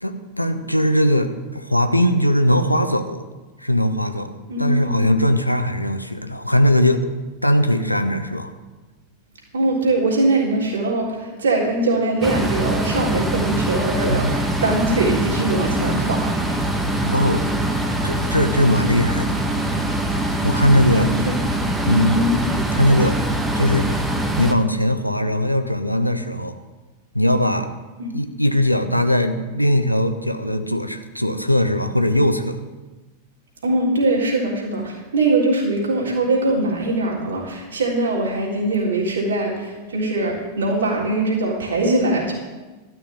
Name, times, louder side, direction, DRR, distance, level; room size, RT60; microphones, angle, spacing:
voice 1, 0.0-3.3 3.6-4.3 4.6-7.1 7.4-8.5 14.1-14.3 17.0-17.5 18.0-19.4 20.4-21.1 21.6-22.2 22.7-23.2 23.5-24.0 24.4-26.6 27.1-27.7 28.1-32.6, left 1 dB, 90° left, 8 dB, 0.9 m, -20 dB
voice 2, 4.5-5.0 9.5-16.3 20.9-21.3 22.1-22.4 28.0-28.2 33.6-42.3, right 2 dB, 65° right, -4 dB, 3.6 m, -22 dB
sound 1, 12.2-24.5, right 1 dB, 5° right, 1.3 m, -23 dB
13.0 x 6.3 x 9.8 m, 1.2 s
figure-of-eight pair, 90°, 0 cm